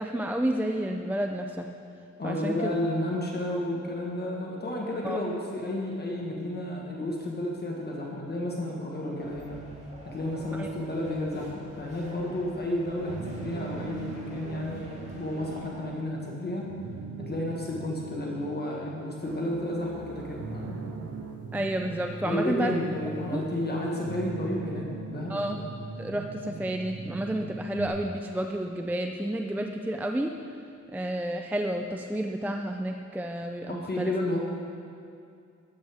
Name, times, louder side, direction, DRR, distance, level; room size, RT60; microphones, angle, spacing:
voice 1, 0.0-1.7 2.2-2.7 5.0-5.2 10.5-10.7 21.5-22.7 23.3-23.4 25.3-25.6 26.0-30.3 30.9-34.1, right 1 dB, 5° right, 3 dB, 0.4 m, -30 dB
voice 2, 2.2-9.6 10.0-16.7 17.2-20.8 22.2-25.4 33.7-34.4, left 1 dB, 35° left, -2 dB, 1.4 m, -32 dB
sound 1, 9.2-15.8, right 1 dB, 25° right, 1.9 m, -47 dB
sound 2, 13.1-27.9, right 4 dB, 70° right, 1.3 m, -41 dB
sound 3, 19.2-21.5, right 6 dB, 55° right, 0.9 m, -44 dB
13.0 x 12.5 x 3.5 m, 2.4 s
wide cardioid pair, 145°, 30 cm